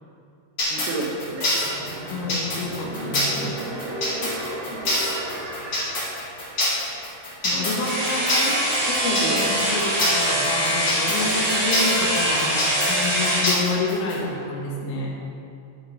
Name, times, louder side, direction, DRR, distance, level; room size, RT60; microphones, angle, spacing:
sound 1, 0.6-14.2, left 1 dB, 45° left, 1.4 m, -25 dB
voice 1, 0.7-1.6 2.1-2.3 5.1-6.2 7.5-7.9 9.2-9.4, right 3 dB, 80° right, 1 dB, 3.4 m, -33 dB
sound 2, 1.4-7.0 7.4-7.5, right 1 dB, 65° right, 2.2 m, -35 dB
voice 2, 2.1-3.6 7.4-15.2, left 3 dB, 80° left, -3 dB, 3.9 m, -29 dB
sound 3, 7.8-13.5, equal, 40° right, 2.5 m, -23 dB
11.0 x 9.0 x 3.6 m, 2.5 s
omnidirectional pair, 5.6 m